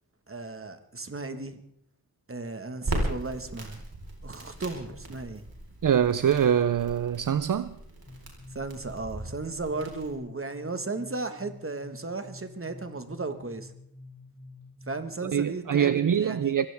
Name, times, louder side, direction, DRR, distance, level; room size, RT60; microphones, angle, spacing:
voice 1, 0.3-1.6 2.3-3.8 4.2-5.4 8.5-13.7 14.9-16.5, right 3 dB, 35° right, 1.5 m, -35 dB
Crackle, 2.8-10.1, right 1 dB, 80° right, 4.3 m, -37 dB
voice 2, 5.8-7.8 15.2-16.7, right 8 dB, 60° right, 0.6 m, -24 dB
sound 1, 8.1-15.6, left 3 dB, 35° left, 2.7 m, -49 dB
23.5 x 16.0 x 3.5 m
wide cardioid pair, 90°, 36 cm